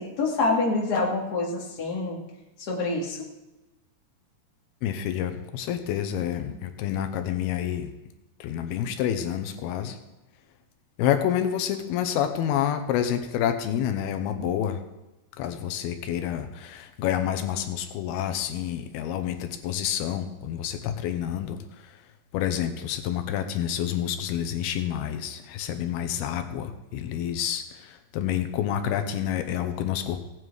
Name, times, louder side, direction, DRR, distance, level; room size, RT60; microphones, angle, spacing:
voice 1, 0.0-2.2 2.6-3.3, left 3 dB, 35° left, -1 dB, 1.9 m, -26 dB
voice 2, 4.8-7.9 8.4-10.0 11.0-14.8 15.4-21.9 22.3-30.2, left 10 dB, 80° left, 7 dB, 2.7 m, -28 dB
16.5 x 9.4 x 4.8 m, 1.0 s
omnidirectional pair, 4.5 m